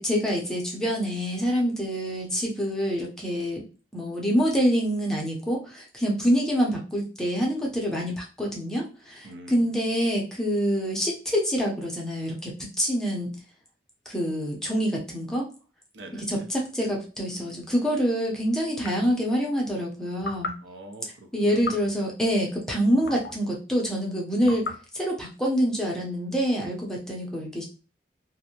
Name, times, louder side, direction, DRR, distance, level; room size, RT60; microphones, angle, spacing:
voice 1, 0.0-3.6 3.9-12.5 12.8-13.3 14.1-15.5 16.3-20.5 21.3-24.7 24.9-27.6, equal, 5° left, -2 dB, 0.6 m, -26 dB
voice 2, 9.2-9.7 15.9-16.4 17.3-17.6 20.6-21.6, right 1 dB, 85° right, 4 dB, 0.6 m, -44 dB
sound 1, 17.6-17.7 18.8-19.2 20.2-20.6 21.6-22.0 23.0-23.4 24.4-24.9, left 4 dB, 70° left, 0.6 m, -35 dB
2.6 x 2.1 x 2.8 m, 0.36 s
head